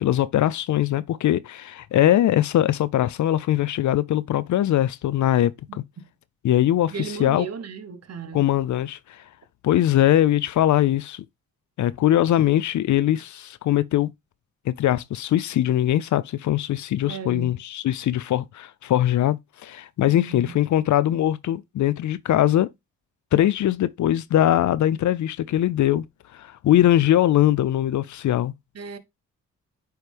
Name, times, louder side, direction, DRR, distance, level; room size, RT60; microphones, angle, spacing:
voice 1, 0.0-5.8 6.4-6.9 7.2-7.5 8.3-9.0 9.6-11.2 11.8-14.1 14.7-22.7 23.3-26.0 26.3-28.5, left 12 dB, 65° left, 0.5 m, -21 dB
voice 2, 6.9-8.5 17.0-17.6 20.0-20.6 28.7-29.0, right 6 dB, 50° right, 1.1 m, -35 dB
9.0 x 3.2 x 3.4 m
cardioid pair, 70°, 32 cm